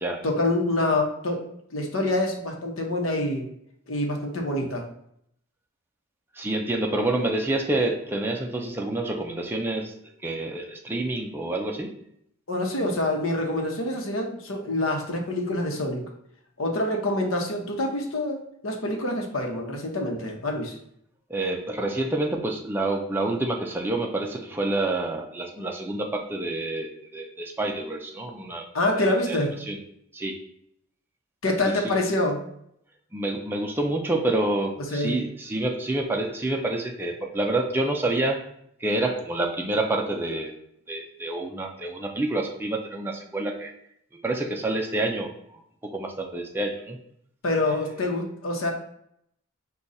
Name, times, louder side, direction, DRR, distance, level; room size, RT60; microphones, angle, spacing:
voice 1, 0.2-1.4 1.7-3.5 3.9-4.8 12.5-16.0 16.6-20.8 28.7-29.5 31.4-32.4 34.9-35.1 47.4-48.7, left 1 dB, 75° left, 1 dB, 0.9 m, -26 dB
voice 2, 6.4-9.9 10.2-11.9 21.3-28.6 28.9-29.4 29.6-29.8 30.1-30.4 31.8-31.9 33.1-38.4 38.8-40.5 40.9-43.7 44.2-47.0, right 2 dB, 10° right, 1 dB, 0.4 m, -28 dB
4.9 x 2.3 x 4.0 m, 0.72 s
head